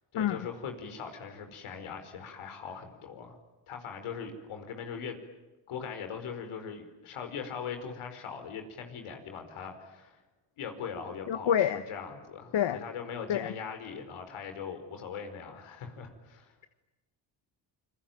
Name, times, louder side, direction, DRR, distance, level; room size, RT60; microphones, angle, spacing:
voice 1, 0.1-3.4 3.7-5.2 5.7-10.2 10.6-16.5, left 6 dB, 80° left, 6 dB, 4.9 m, -40 dB
voice 2, 11.3-11.8 12.5-12.8 13.3-13.5, left 10 dB, 65° left, 11 dB, 1.4 m, -27 dB
28.5 x 22.5 x 9.2 m, 1.1 s
supercardioid pair, 60°, 49 cm